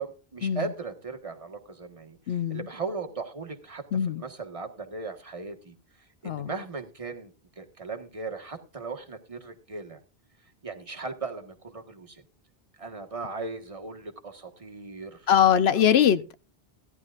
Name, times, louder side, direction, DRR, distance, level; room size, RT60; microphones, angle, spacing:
voice 1, 0.0-10.0 10.6-12.2 12.8-15.8, right 4 dB, 30° right, 1.5 m, -38 dB
voice 2, 2.3-2.6 3.9-4.2 6.2-6.5 15.3-16.3, left 9 dB, 75° left, 1.0 m, -22 dB
17.0 x 11.0 x 2.5 m
omnidirectional pair, 1.1 m